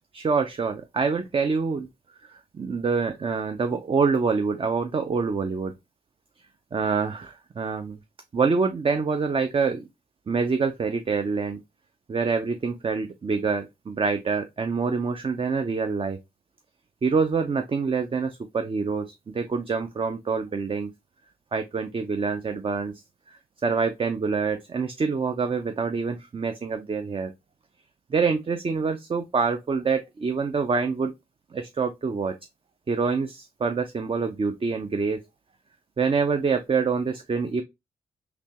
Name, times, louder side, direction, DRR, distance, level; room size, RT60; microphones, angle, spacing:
voice 1, 0.1-1.9 2.6-5.7 6.7-7.9 8.3-9.8 10.3-11.6 12.1-16.2 17.0-19.1 19.4-20.9 21.5-22.9 23.6-27.3 28.1-31.1 31.5-32.3 32.9-35.2 36.0-37.6, right 5 dB, 35° right, 0.5 m, -26 dB
3.3 x 2.9 x 2.8 m
supercardioid pair, 50°, 16 cm